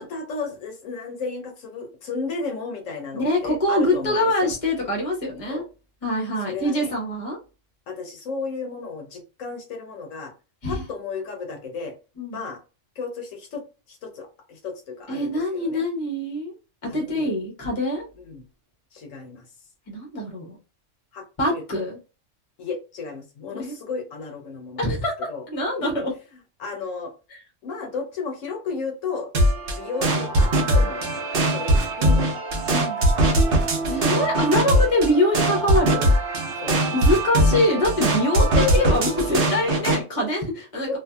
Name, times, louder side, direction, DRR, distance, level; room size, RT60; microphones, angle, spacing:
voice 1, 0.0-4.5 5.5-5.6 6.4-6.9 7.9-10.3 10.7-11.9 12.3-12.6 13.0-13.6 13.9-15.8 16.9-17.3 18.2-18.4 18.9-19.4 21.1-21.6 22.6-25.0 25.3-25.4 25.8-26.0 26.6-27.1 27.6-29.3 29.7-31.2 31.4-32.3 33.0-33.7 33.9-34.3 34.7-34.9 36.5-36.9 38.4-39.0 40.9-41.0, left 4 dB, 80° left, 3 dB, 1.1 m, -33 dB
voice 2, 3.1-5.6 6.0-7.4 10.6-10.8 12.2-12.4 15.1-16.5 16.8-18.1 19.9-20.6 21.4-22.0 23.6-23.7 24.8-26.1 27.3-27.4 30.8-30.9 32.7-33.1 33.9-36.1 36.9-41.0, left 1 dB, 30° left, -1 dB, 0.9 m, -24 dB
sound 1, 29.3-40.0, right 1 dB, 50° right, 0.8 m, -21 dB
2.7 x 2.5 x 2.2 m, 0.32 s
omnidirectional pair, 1.3 m